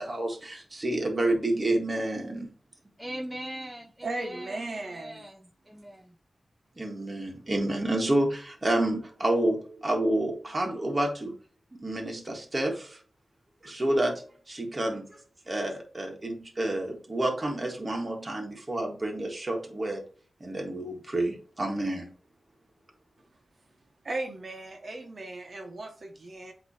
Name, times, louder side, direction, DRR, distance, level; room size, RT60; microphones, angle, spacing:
voice 1, 0.0-2.5 6.8-11.4 11.7-13.0 13.6-20.1 20.4-22.1, right 1 dB, 25° right, 2 dB, 1.7 m, -29 dB
voice 2, 3.0-6.1, right 1 dB, 5° right, 0 dB, 0.8 m, -41 dB
voice 3, 4.0-5.3 24.0-26.5, right 2 dB, 50° right, 3 dB, 1.2 m, -36 dB
8.0 x 3.1 x 4.3 m, 0.37 s
wide cardioid pair, 125°, 0 cm